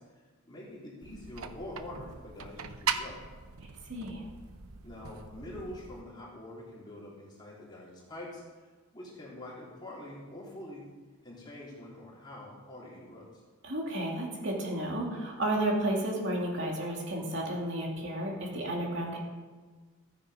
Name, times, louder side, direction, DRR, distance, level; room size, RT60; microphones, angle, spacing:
voice 1, 0.4-3.2 4.8-8.4 8.9-10.9 11.2-13.4, left 1 dB, 20° left, -5 dB, 3.6 m, -45 dB
sound 1, 1.0-6.0, right 6 dB, 80° right, 0.8 m, -39 dB
voice 2, 3.9-4.2 13.6-19.2, right 1 dB, 55° right, -1 dB, 2.7 m, -32 dB
15.5 x 9.7 x 5.1 m, 1.4 s
head